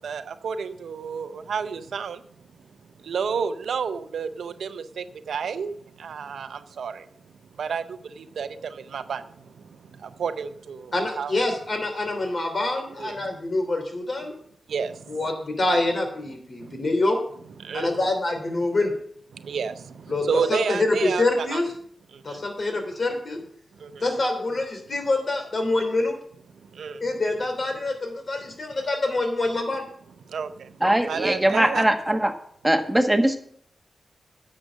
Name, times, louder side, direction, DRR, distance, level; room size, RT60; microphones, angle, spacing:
voice 1, 0.0-2.2 3.0-11.3 12.9-13.4 14.7-15.2 16.6-16.8 17.6-18.0 19.3-21.6 22.1-22.4 23.8-24.1 26.6-27.1 30.3-30.8 31.1-31.9, right 6 dB, 85° right, 0.6 m, -31 dB
voice 2, 10.9-14.3 15.1-17.2 17.7-18.9 20.1-20.2 20.5-21.7 22.2-23.4 24.0-26.2 27.0-29.8, left 2 dB, 55° left, 3.1 m, -25 dB
voice 3, 30.8-32.3 32.6-33.4, right 1 dB, 10° right, 1.4 m, -21 dB
10.5 x 6.4 x 6.2 m
cardioid pair, 45°, 0 cm